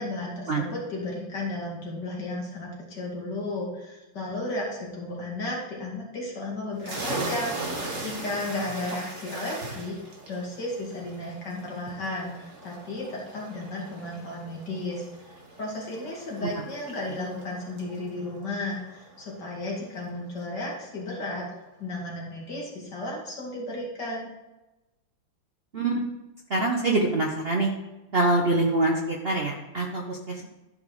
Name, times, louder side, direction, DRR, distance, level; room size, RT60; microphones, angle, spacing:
voice 1, 0.0-10.0 10.3-21.4 21.8-24.3, left 2 dB, 50° left, -3 dB, 2.9 m, -34 dB
sound 1, 6.8-20.2, right 2 dB, 35° right, 2.0 m, -39 dB
voice 2, 26.5-27.7 28.1-30.5, right 2 dB, 70° right, 0 dB, 0.5 m, -25 dB
12.5 x 5.2 x 4.9 m, 1.0 s
omnidirectional pair, 2.4 m